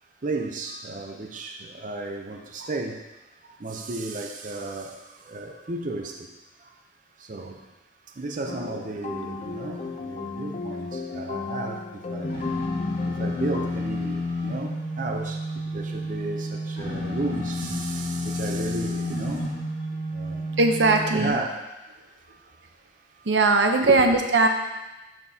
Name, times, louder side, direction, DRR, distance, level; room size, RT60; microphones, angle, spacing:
voice 1, 0.2-3.1 3.4-6.3 6.6-6.8 7.2-7.8 8.0-12.6 12.9-19.8 20.0-21.7 22.2-22.6 23.1-23.3 23.8-24.1, right 2 dB, 45° right, 2 dB, 0.6 m, -34 dB
sound 1, 8.5-13.7, left 3 dB, 35° left, 0.3 m, -34 dB
sound 2, 12.2-21.3, left 1 dB, 65° left, 2.2 m, -30 dB
voice 2, 20.6-21.4 23.3-24.5, right 3 dB, 80° right, 4 dB, 0.8 m, -19 dB
12.0 x 4.5 x 2.8 m, 1.0 s
head